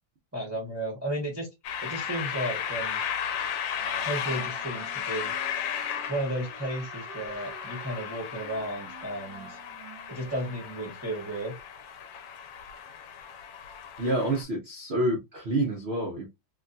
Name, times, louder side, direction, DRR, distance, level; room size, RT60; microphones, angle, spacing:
voice 1, 0.3-1.5 1.8-3.0 4.0-5.3 6.1-9.6 10.1-11.5, right 1 dB, 15° right, 0.5 m, -33 dB
sound 1, 1.6-14.4, left 8 dB, 80° left, 1.3 m, -35 dB
Wind instrument woodwind instrument, 3.8-11.1, right 6 dB, 65° right, 1.1 m, -50 dB
voice 2, 14.0-16.3, right 1 dB, 85° right, 0.5 m, -28 dB
3.4 x 2.3 x 2.5 m
omnidirectional pair, 2.0 m